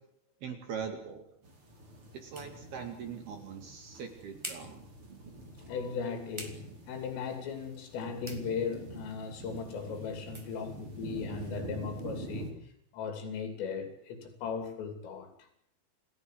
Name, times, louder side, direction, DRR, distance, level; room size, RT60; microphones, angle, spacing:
voice 1, 0.4-1.3 2.1-4.8, right 7 dB, 60° right, 3.9 m, -41 dB
sound 1, 0.6-12.1, right 1 dB, 10° right, 2.0 m, -52 dB
sound 2, 1.4-12.5, right 2 dB, 30° right, 5.0 m, -46 dB
voice 2, 5.6-6.6 6.9-15.3, left 6 dB, 90° left, 5.6 m, -37 dB
29.0 x 17.0 x 7.9 m
omnidirectional pair, 5.6 m